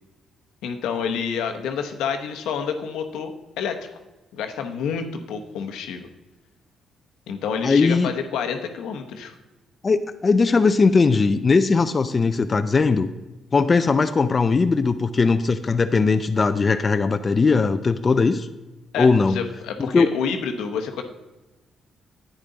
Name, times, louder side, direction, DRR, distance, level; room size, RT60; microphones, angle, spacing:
voice 1, 0.6-3.9 4.3-6.1 7.3-9.3 18.9-21.0, left 6 dB, 85° left, 6 dB, 1.0 m, -28 dB
voice 2, 7.6-8.1 9.8-13.1 13.5-18.5 19.0-19.4 19.8-20.1, left 4 dB, 35° left, 9 dB, 0.5 m, -19 dB
10.0 x 9.2 x 4.0 m, 1.1 s
cardioid pair, 90°, 0 cm